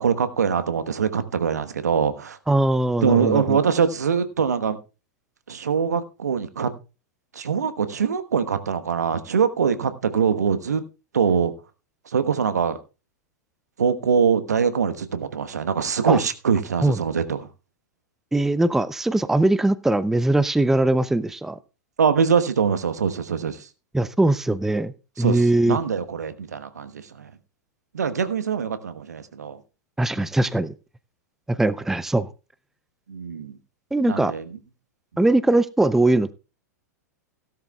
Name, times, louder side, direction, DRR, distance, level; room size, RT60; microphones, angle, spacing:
voice 1, 0.0-2.4 3.0-4.8 5.5-6.7 7.3-10.8 11.1-11.5 12.1-12.8 13.8-17.5 22.0-23.7 25.2-27.3 27.9-29.6 33.1-33.6 34.1-34.5, right 6 dB, 70° right, 1.2 m, -23 dB
voice 2, 2.5-3.6 16.1-16.2 16.8-17.0 18.3-21.6 23.9-25.8 30.0-30.7 31.5-32.3 33.9-34.3 35.2-36.3, right 2 dB, 5° right, 0.5 m, -21 dB
17.0 x 12.0 x 2.3 m
figure-of-eight pair, 95°, 9 cm